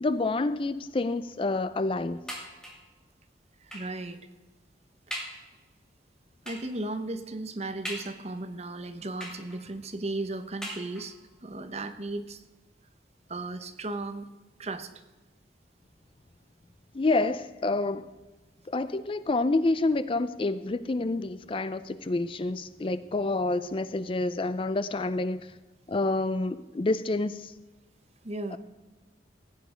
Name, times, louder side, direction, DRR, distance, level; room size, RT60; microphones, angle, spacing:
voice 1, 0.0-2.2 16.9-18.1 18.7-25.5 25.9-27.5 28.5-28.6, left 2 dB, 30° left, 0.4 m, -28 dB
sound 1, 2.3-2.9 3.7-4.0 4.6-4.7 5.1-5.5 6.5-6.8 7.8-8.5 9.2-9.8 10.6-11.3 12.1-12.2 12.5-12.6, equal, 5° left, 2.6 m, -40 dB
voice 2, 3.6-4.2 6.4-11.2 11.4-12.4 13.3-14.3 14.6-14.9 28.2-28.6, right 2 dB, 35° right, 0.9 m, -35 dB
16.0 x 9.4 x 5.1 m
head